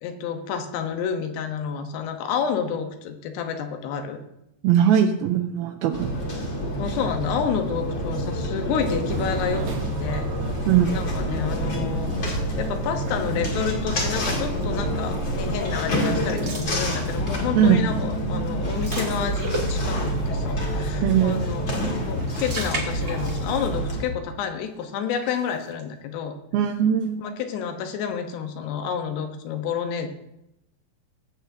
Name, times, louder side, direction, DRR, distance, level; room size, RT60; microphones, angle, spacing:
voice 1, 0.0-4.2 6.8-9.6 10.0-10.3 10.9-21.7 22.1-26.3 27.2-30.1, left 7 dB, 85° left, 6 dB, 3.1 m, -29 dB
voice 2, 4.6-6.1 10.7-11.0 17.5-17.9 21.0-21.5 26.5-27.3, right 9 dB, 80° right, 4 dB, 2.3 m, -20 dB
sound 1, 5.9-24.0, equal, 40° left, 1.9 m, -27 dB
sound 2, 9.1-16.8, right 3 dB, 65° right, 2.6 m, -36 dB
sound 3, 16.1-17.5 17.9-18.1 18.4-20.1 21.9-23.7 24.0-24.1 25.0-25.8, right 2 dB, 45° right, 1.6 m, -36 dB
20.0 x 8.2 x 2.7 m, 0.84 s
omnidirectional pair, 4.7 m